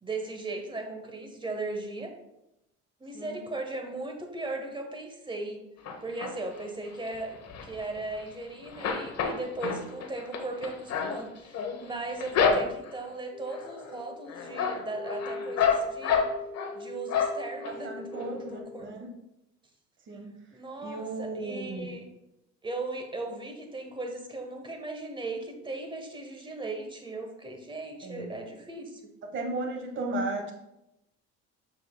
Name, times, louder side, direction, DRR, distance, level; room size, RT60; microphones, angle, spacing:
voice 1, 0.0-2.1 3.0-5.6 6.0-7.4 7.6-16.3 16.7-18.9 20.5-22.1 22.6-29.0, right 2 dB, 15° right, 3 dB, 1.2 m, -37 dB
sound 1, 5.9-6.6 7.1-8.4 8.7-13.0 13.5-14.0 14.3-16.7 17.1-17.7 18.1-18.2 18.5-18.6, left 6 dB, 55° left, 1.0 m, -29 dB
voice 2, 12.3-12.7 17.6-19.1 20.0-20.3 20.8-21.9 28.0-28.3 29.3-30.5, right 2 dB, 40° right, 2 dB, 1.2 m, -35 dB
sound 2, 13.3-18.9, left 3 dB, 30° left, 0.6 m, -42 dB
7.3 x 6.2 x 2.2 m, 0.88 s
cardioid pair, 100°, 31 cm